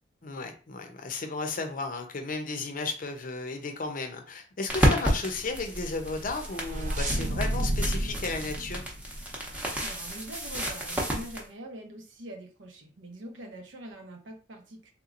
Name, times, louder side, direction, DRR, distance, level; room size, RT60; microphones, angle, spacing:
voice 1, 0.2-8.8, left 3 dB, 45° left, 5 dB, 0.6 m, -34 dB
sound 1, 4.7-11.4, equal, 10° right, 0.8 m, -31 dB
sound 2, 6.1-9.7, right 1 dB, 40° right, 0.6 m, -31 dB
voice 2, 9.8-14.9, right 1 dB, 75° right, 2 dB, 0.9 m, -43 dB
3.5 x 2.9 x 2.5 m, 0.36 s
head